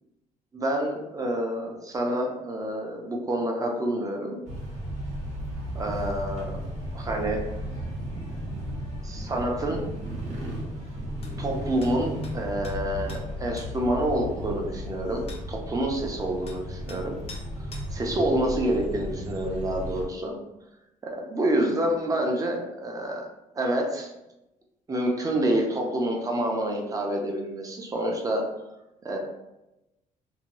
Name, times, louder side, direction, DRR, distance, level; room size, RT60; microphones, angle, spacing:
voice 1, 0.5-4.4 5.7-6.5 6.9-7.4 9.0-9.8 11.4-17.2 17.9-20.4 21.3-23.3 23.5-24.1 24.9-28.4 29.0-29.2, right 1 dB, 25° right, 0 dB, 0.5 m, -28 dB
sound 1, 4.5-20.1, equal, 50° right, 0.8 m, -35 dB
sound 2, 11.2-11.3 11.8-11.9 12.2-12.4 12.6-12.8 13.1-13.2 13.6-13.7 15.3-15.4 16.5-16.6 16.9-17.0 17.3-17.5 17.7-17.9, left 3 dB, 40° left, 0.5 m, -44 dB
2.7 x 2.2 x 3.0 m, 0.92 s
cardioid pair, 130°, 15 cm